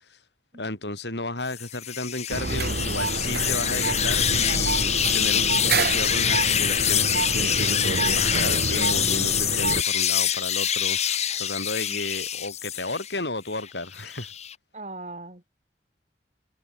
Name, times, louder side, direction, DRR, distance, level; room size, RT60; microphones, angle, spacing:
voice 1, 0.6-14.3, left 2 dB, 80° left, 6.5 m, -33 dB
sound 1, 1.5-13.2 13.6-14.5, left 9 dB, 40° left, 1.6 m, -25 dB
sound 2, 2.3-9.8, right 3 dB, 60° right, 1.2 m, -28 dB
voice 2, 14.7-15.5, right 2 dB, 40° right, 3.7 m, -39 dB
head